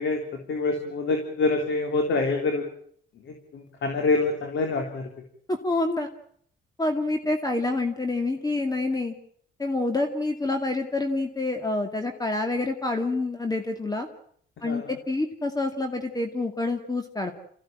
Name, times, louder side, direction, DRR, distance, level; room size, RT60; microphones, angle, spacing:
voice 1, 0.0-2.7 3.2-5.1 14.6-15.0, left 3 dB, 70° left, 3 dB, 3.7 m, -26 dB
voice 2, 5.5-6.1 6.8-9.1 9.6-14.1 14.6-17.3, left 2 dB, 20° left, 5 dB, 2.4 m, -27 dB
27.0 x 15.5 x 9.0 m, 0.65 s
cardioid pair, 90°, 20 cm